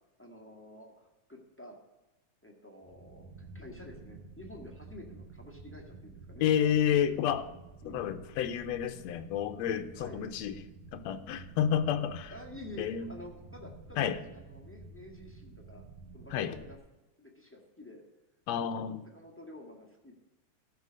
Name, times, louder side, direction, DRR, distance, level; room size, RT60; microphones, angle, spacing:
voice 1, 0.2-1.8 2.4-3.3 3.5-6.5 6.9-7.0 7.8-8.0 9.9-10.2 12.3-15.8 16.1-16.8 17.2-18.0 18.5-20.1, left 1 dB, 10° left, 0 dB, 0.8 m, -49 dB
sound 1, 2.8-16.8, right 3 dB, 90° right, 2.4 m, -51 dB
voice 2, 6.4-7.4 7.9-10.6 10.9-12.3 12.8-13.1 14.0-14.2 16.3-16.6 18.5-19.0, left 9 dB, 75° left, 9 dB, 1.8 m, -30 dB
14.0 x 5.6 x 6.3 m, 1.1 s
omnidirectional pair, 3.3 m